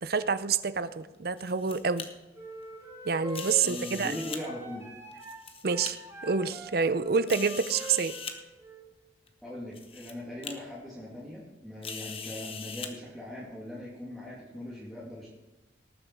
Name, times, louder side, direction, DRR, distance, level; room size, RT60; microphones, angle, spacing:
voice 1, 0.0-2.1 3.1-4.1 5.6-6.0 6.2-8.1, right 5 dB, 55° right, 14 dB, 0.6 m, -27 dB
sound 1, 1.4-2.1 3.3-4.4 5.1-5.9 6.6-6.7 7.3-8.4 9.3-9.4 9.7-10.1 10.4-10.5 11.8-12.9, left 6 dB, 30° left, 1.0 m, -40 dB
sound 2, 2.3-8.9, right 3 dB, 15° right, 2.3 m, -44 dB
voice 2, 3.6-4.8 9.4-15.3, left 1 dB, ahead, -8 dB, 2.5 m, -40 dB
18.5 x 7.3 x 4.8 m, 1.1 s
head